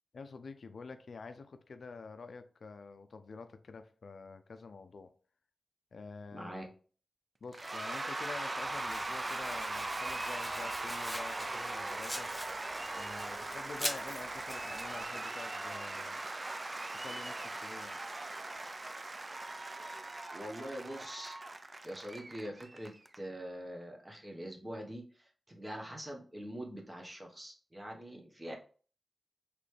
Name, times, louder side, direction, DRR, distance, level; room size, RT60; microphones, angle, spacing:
voice 1, 0.1-5.1 5.9-6.7 7.4-12.3 12.9-16.2 16.9-18.0, left 4 dB, 75° left, 9 dB, 0.4 m, -48 dB
voice 2, 6.3-6.7 20.3-21.4 21.8-28.6, equal, 25° right, 1 dB, 1.2 m, -44 dB
Cheering / Applause / Crowd, 7.5-23.2, right 2 dB, 40° right, 0.4 m, -40 dB
Domestic sounds home sounds, 8.6-15.0, left 1 dB, 10° left, 0.5 m, -45 dB
4.0 x 3.2 x 3.2 m, 0.40 s
cardioid pair, 50°, 0 cm